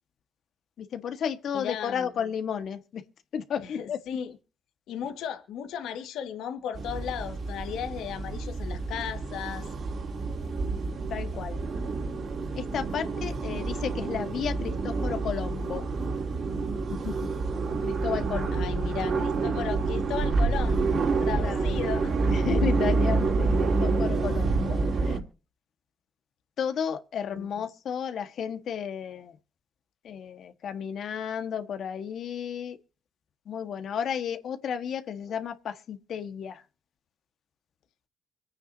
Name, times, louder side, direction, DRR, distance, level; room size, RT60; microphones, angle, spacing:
voice 1, 0.8-3.0 3.3-4.0 4.3-4.4 11.1-11.6 12.6-15.8 16.9-17.3 17.8-18.7 21.4-21.7 22.3-25.2 26.6-29.4 30.0-32.8 33.4-36.6, left 8 dB, 65° left, 1.4 m, -33 dB
voice 2, 1.5-2.1 3.6-4.3 4.9-9.7 18.5-20.9 21.2-22.4 27.3-27.5, left 8 dB, 85° left, 1.7 m, -35 dB
sound 1, 6.7-25.2, right 3 dB, 50° right, 3.0 m, -28 dB
25.0 x 9.1 x 2.7 m
cardioid pair, 90°, 0 cm